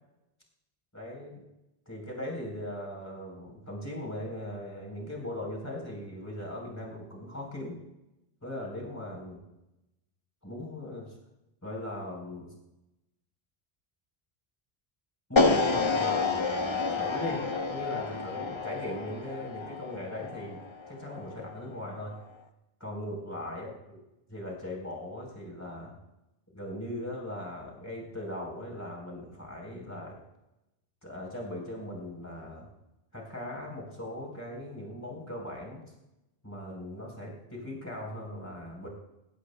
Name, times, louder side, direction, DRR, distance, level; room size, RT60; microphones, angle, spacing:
voice 1, 0.9-1.4 1.9-7.8 8.4-9.4 10.4-11.1 11.6-12.5 15.3-20.6 20.9-22.2 22.8-24.0 24.3-25.9 26.5-30.2 31.0-32.7 33.1-35.8 36.4-38.9, left 1 dB, 15° left, -2 dB, 3.9 m, -39 dB
sound 1, 15.4-21.5, left 4 dB, 30° left, 0.8 m, -29 dB
20.0 x 16.5 x 2.3 m, 0.94 s
omnidirectional pair, 1.1 m